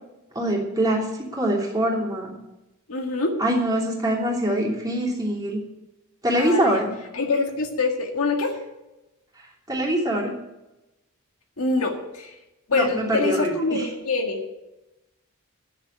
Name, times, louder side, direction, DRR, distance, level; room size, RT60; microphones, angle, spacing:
voice 1, 0.3-2.4 3.4-5.6 6.2-6.9 9.7-10.3 12.7-13.9, right 1 dB, 15° right, -4 dB, 3.0 m, -24 dB
voice 2, 2.9-3.3 6.4-6.8 7.1-8.5 11.6-12.3 12.7-14.4, left 3 dB, 70° left, 2 dB, 1.8 m, -25 dB
10.5 x 7.6 x 8.9 m, 0.99 s
head